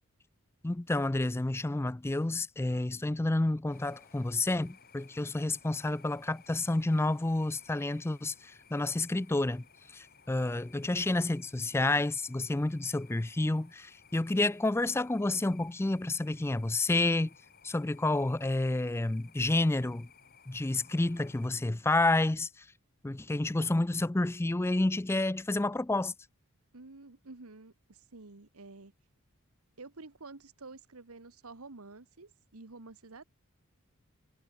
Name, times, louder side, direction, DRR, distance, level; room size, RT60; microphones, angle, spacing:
voice 1, 0.6-17.3 17.6-20.1 20.5-22.7 23.0-26.1, left 2 dB, 10° left, 0.3 m, -30 dB
sound 1, 3.7-21.5, left 6 dB, 45° left, 3.0 m, -59 dB
voice 2, 26.7-28.9 29.8-33.2, right 3 dB, 80° right, 1.4 m, -50 dB
head